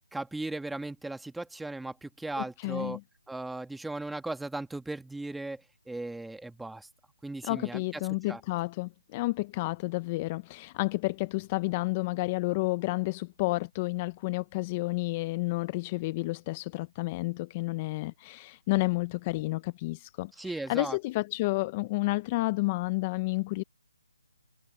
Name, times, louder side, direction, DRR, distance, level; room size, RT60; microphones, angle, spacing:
voice 1, 0.1-3.0 3.3-5.6 5.9-6.9 7.2-8.0 8.3-8.4 20.4-21.0, right 2 dB, ahead, 1.6 m, -37 dB
voice 2, 2.4-3.0 7.4-23.6, left 22 dB, 20° left, 0.4 m, -31 dB
hypercardioid pair, 170°, 0 cm